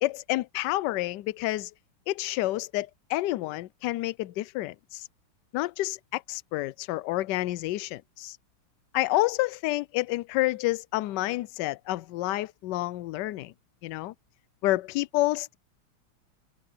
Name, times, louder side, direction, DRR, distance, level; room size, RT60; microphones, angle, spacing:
voice 1, 0.0-1.7 2.1-5.1 5.5-8.4 8.9-13.5 13.8-14.1 14.6-15.6, left 17 dB, 75° left, 1.0 m, -29 dB
omnidirectional pair, 2.3 m